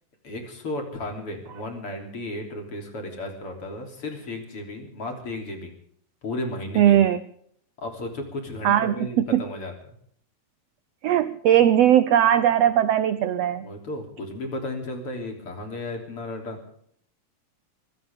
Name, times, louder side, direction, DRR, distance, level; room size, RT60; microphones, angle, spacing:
voice 1, 0.2-5.7 6.2-7.0 7.8-9.9 13.6-16.6, left 2 dB, 45° left, 3 dB, 4.1 m, -34 dB
voice 2, 6.8-7.2 8.6-8.9 9.3-9.4 11.0-13.6, right 10 dB, 75° right, 13 dB, 1.5 m, -19 dB
24.0 x 16.5 x 3.6 m, 0.65 s
omnidirectional pair, 3.7 m